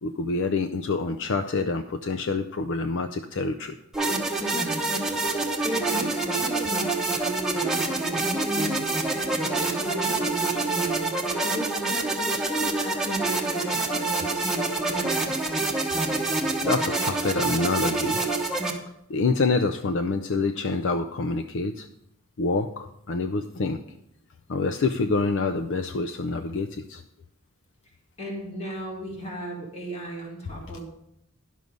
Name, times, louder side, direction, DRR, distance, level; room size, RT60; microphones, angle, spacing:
voice 1, 0.0-3.8 16.6-18.2 19.1-21.9 22.4-23.8 24.5-27.0, left 3 dB, 60° left, 9 dB, 0.5 m, -26 dB
sound 1, 3.9-18.7, right 3 dB, 5° right, 1.1 m, -26 dB
voice 2, 4.5-4.8 5.2-11.8 12.2-15.4 28.2-30.9, right 1 dB, 30° left, -1 dB, 2.0 m, -36 dB
11.0 x 6.4 x 5.2 m, 0.79 s
head